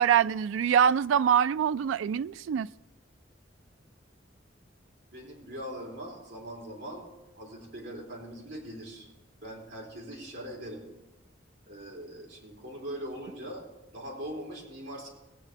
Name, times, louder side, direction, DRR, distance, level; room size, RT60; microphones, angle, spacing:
voice 1, 0.0-2.7, right 8 dB, 80° right, 0.3 m, -24 dB
voice 2, 5.1-7.1 7.3-9.1 9.4-10.8 11.7-13.6 13.9-15.1, equal, 60° right, 3.9 m, -41 dB
16.5 x 9.0 x 4.0 m
head